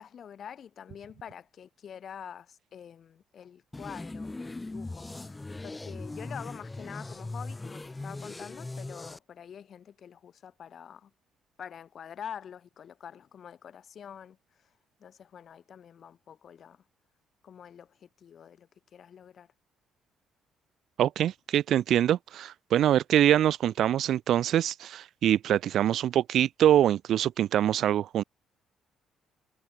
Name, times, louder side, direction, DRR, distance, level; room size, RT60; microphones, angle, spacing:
voice 1, 0.0-11.1 11.6-14.7 15.0-16.8 17.4-19.5, left 8 dB, 55° left, 4.3 m, -46 dB
sound 1, 3.7-9.2, left 2 dB, 20° left, 1.8 m, -39 dB
voice 2, 21.0-28.2, right 11 dB, 70° right, 0.5 m, -24 dB
cardioid pair, 85°, 0 cm